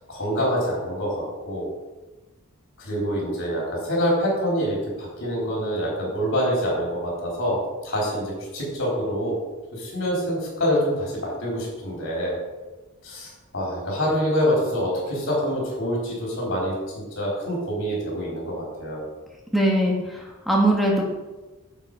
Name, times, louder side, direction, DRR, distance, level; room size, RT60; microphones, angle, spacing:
voice 1, 0.1-1.7 2.8-9.4 9.7-12.3 13.0-19.0, equal, 55° left, -4 dB, 3.8 m, -26 dB
voice 2, 19.5-21.0, right 1 dB, ahead, -2 dB, 1.5 m, -21 dB
9.0 x 7.5 x 5.4 m, 1.2 s
head